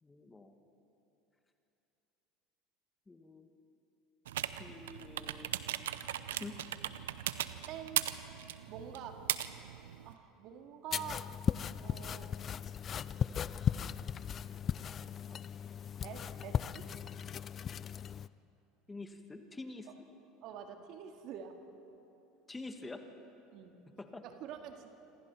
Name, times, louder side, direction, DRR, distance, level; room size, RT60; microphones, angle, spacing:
voice 1, 0.0-0.6 3.1-3.5 4.6-5.6 6.3-6.6 18.9-19.9 22.5-23.0 23.9-24.2, left 3 dB, 15° left, 5 dB, 2.1 m, -47 dB
sound 1, 4.3-10.1, right 12 dB, 80° right, 0.7 m, -38 dB
voice 2, 7.7-8.0 8.7-9.3 10.0-11.3 11.8-12.3 15.3-15.4 16.0-16.9 20.4-21.6 23.5-23.8 24.2-24.9, right 8 dB, 60° right, 4 dB, 2.1 m, -46 dB
sound 2, 10.9-18.3, left 8 dB, 40° left, 0.5 m, -37 dB
27.0 x 26.5 x 4.5 m, 3.0 s
hypercardioid pair, 80°, 0 cm